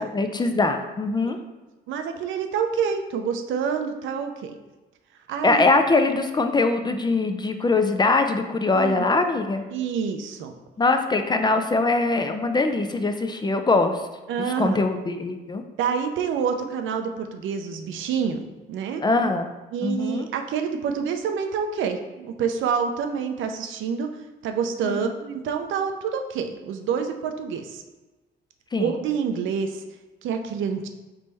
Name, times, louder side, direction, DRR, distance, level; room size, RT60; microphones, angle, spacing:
voice 1, 0.0-1.4 5.4-9.6 10.8-14.0 14.4-15.6 19.0-19.5 19.8-20.3 24.8-25.1 28.7-28.9, left 3 dB, 20° left, 6 dB, 0.4 m, -22 dB
voice 2, 1.9-4.6 5.3-5.6 8.7-9.1 9.7-10.5 14.3-14.8 15.8-19.0 19.7-24.1 24.4-27.8 28.8-29.8 30.2-30.9, right 6 dB, 75° right, 6 dB, 0.5 m, -27 dB
4.0 x 3.4 x 3.3 m, 1.1 s
cardioid pair, 90°, 20 cm